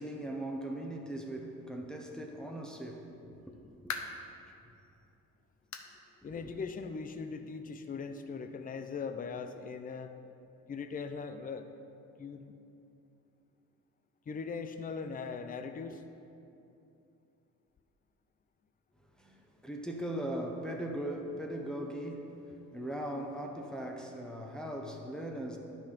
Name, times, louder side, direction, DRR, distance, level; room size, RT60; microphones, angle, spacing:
voice 1, 0.0-3.1 3.5-4.0 6.3-6.5 19.2-22.3 22.7-25.6, right 1 dB, ahead, 0 dB, 1.0 m, -39 dB
sound 1, 3.5-4.3 4.8-4.9 5.7-6.0 6.3-6.4 6.9-7.0 8.1-8.2, left 5 dB, 65° left, 0.8 m, -41 dB
voice 2, 6.2-10.1 10.7-11.7 12.2-12.6 14.3-16.0, left 5 dB, 30° left, 8 dB, 0.5 m, -40 dB
10.0 x 6.0 x 5.0 m, 2.7 s
cardioid pair, 90°, 30 cm